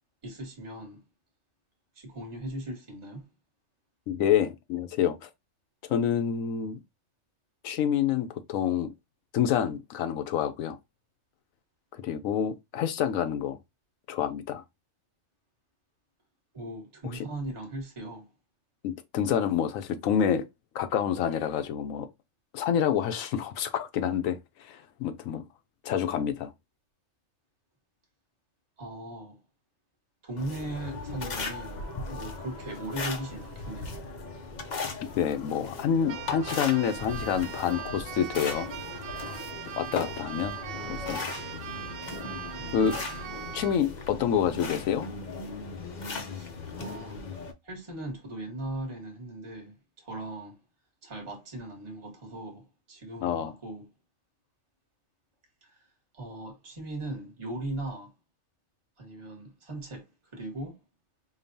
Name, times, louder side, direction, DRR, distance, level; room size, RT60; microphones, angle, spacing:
voice 1, 0.2-1.0 1.9-3.3 16.5-18.3 28.8-29.4 30.2-31.8 32.1-34.0 42.6-43.0 46.3-47.2 47.6-50.6 51.0-53.9 55.6-55.8 56.1-58.1 59.0-60.1 60.3-60.8, right 1 dB, 25° right, 1.2 m, -38 dB
voice 2, 4.1-5.3 5.9-6.8 7.6-8.9 9.3-10.8 11.9-13.6 14.1-14.6 18.8-20.4 20.7-22.1 22.5-25.4 25.8-26.5 35.2-38.7 39.8-40.6 40.9-41.2 42.7-43.0 43.5-45.1 53.2-53.5, left 8 dB, 85° left, 1.1 m, -27 dB
sound 1, 30.4-47.5, left 4 dB, 50° left, 0.5 m, -38 dB
Keyboard (musical), 36.1-43.8, right 10 dB, 90° right, 1.0 m, -40 dB
5.2 x 2.3 x 2.6 m
omnidirectional pair, 1.4 m